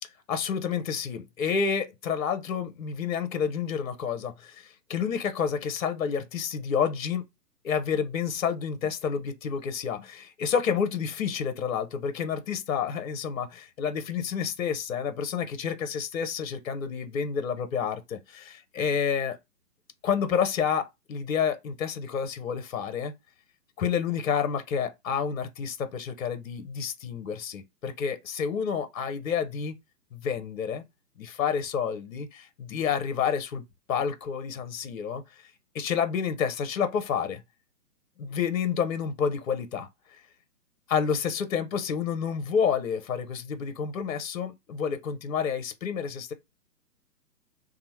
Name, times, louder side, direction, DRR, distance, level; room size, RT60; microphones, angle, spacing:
voice 1, 0.3-7.2 7.6-19.4 20.0-23.1 23.8-29.7 30.1-30.8 31.2-35.2 35.7-37.4 38.2-39.9 40.9-46.3, left 7 dB, 55° left, 0.7 m, -29 dB
2.9 x 2.1 x 2.9 m
hypercardioid pair, 140°, 50 cm